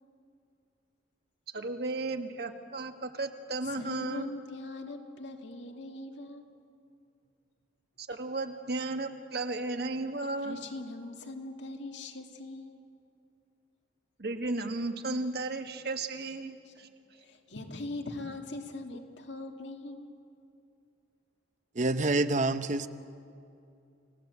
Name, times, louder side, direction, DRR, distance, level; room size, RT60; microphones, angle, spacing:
voice 1, 1.5-4.3 8.0-10.6 14.2-16.9, right 2 dB, 60° right, 6 dB, 1.7 m, -34 dB
voice 2, 3.7-6.4 10.4-12.8 16.4-16.7 17.2-20.1, left 2 dB, 85° left, 3 dB, 2.3 m, -41 dB
voice 3, 21.7-22.9, right 2 dB, 45° right, 11 dB, 0.8 m, -27 dB
29.5 x 18.0 x 8.3 m, 2.6 s
head